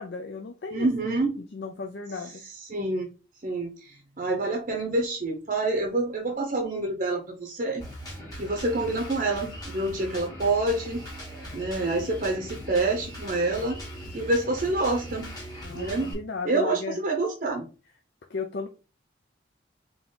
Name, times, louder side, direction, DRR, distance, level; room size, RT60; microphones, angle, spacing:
voice 1, 0.0-0.9 1.4-2.4 15.6-17.0 18.3-18.7, left 4 dB, 65° left, 5 dB, 0.5 m, -35 dB
voice 2, 0.7-1.3 2.7-3.1 3.4-7.8 8.4-11.0 11.5-13.8 14.1-15.3 15.7-16.1 16.4-17.7, right 2 dB, 45° right, 3 dB, 0.7 m, -27 dB
Drum kit, 7.8-16.1, equal, 20° left, 1.6 m, -40 dB
3.7 x 2.9 x 3.9 m, 0.33 s
head